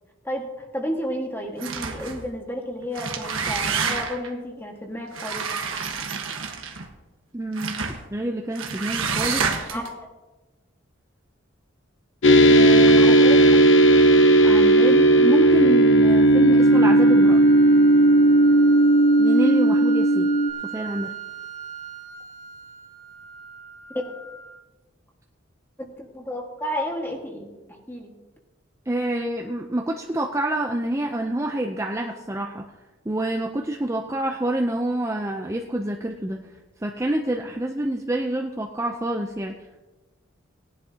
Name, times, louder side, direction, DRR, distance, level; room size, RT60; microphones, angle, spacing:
voice 1, 0.2-5.4 9.7-10.1 13.0-13.4 25.8-28.1, equal, 10° left, 1 dB, 1.6 m, -32 dB
sound 1, 1.6-2.2 2.8-4.3 5.1-6.9 7.6-8.0 8.6-9.9, right 5 dB, 85° right, 1.4 m, -28 dB
voice 2, 7.3-7.8 8.1-9.7 12.5-13.0 14.4-17.4 19.2-20.3 20.7-21.1 28.9-32.6 33.1-36.4 36.8-39.5, right 1 dB, 15° right, 2 dB, 0.5 m, -27 dB
sound 2, 12.2-20.5, right 1 dB, 70° left, 0.9 m, -15 dB
sound 3, 16.6-24.6, right 6 dB, 30° left, 2.9 m, -38 dB
18.5 x 11.0 x 2.9 m, 1.1 s
head